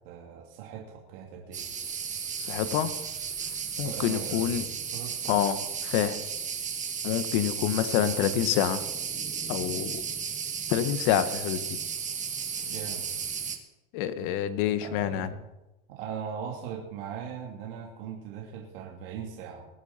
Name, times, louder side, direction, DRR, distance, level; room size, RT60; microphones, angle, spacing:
voice 1, 0.0-1.7 3.8-5.5 8.0-8.4 12.6-13.0 14.8-15.4 15.9-19.7, right 7 dB, 70° right, -1 dB, 2.8 m, -40 dB
sound 1, 1.5-13.6, right 7 dB, 25° right, 1.7 m, -34 dB
voice 2, 2.4-2.9 3.8-4.6 5.3-5.6 5.8-6.2 7.0-8.8 9.5-10.0 10.7-11.8 13.9-15.3, left 11 dB, 65° left, 12 dB, 1.3 m, -27 dB
21.5 x 8.7 x 4.3 m, 0.97 s
supercardioid pair, 120°, 29 cm